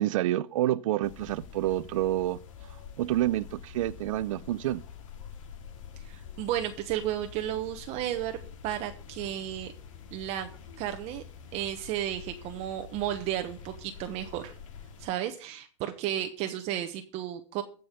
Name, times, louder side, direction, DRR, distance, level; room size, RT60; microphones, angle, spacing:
voice 1, 0.0-2.4 3.0-4.8, right 14 dB, 75° right, 0.6 m, -28 dB
sound 1, 1.0-15.1, left 7 dB, 70° left, 2.3 m, -47 dB
voice 2, 6.0-8.4 8.6-9.7 10.1-10.5 10.8-11.2 11.5-14.5 15.0-17.6, right 12 dB, 40° right, 1.1 m, -33 dB
15.5 x 5.5 x 6.8 m
supercardioid pair, 145°, 17 cm